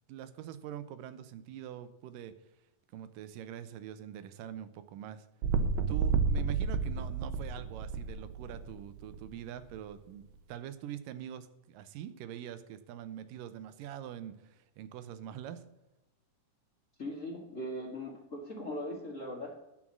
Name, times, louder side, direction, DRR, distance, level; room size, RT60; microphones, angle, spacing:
voice 1, 0.1-2.3 2.9-5.3 5.9-15.6, right 10 dB, 90° right, 12 dB, 2.5 m, -44 dB
sound 1, 5.4-9.2 9.7-9.8, right 5 dB, 75° right, 1.6 m, -31 dB
voice 2, 17.0-19.5, left 1 dB, 30° left, 0 dB, 1.6 m, -39 dB
11.0 x 6.3 x 7.4 m, 0.96 s
omnidirectional pair, 3.7 m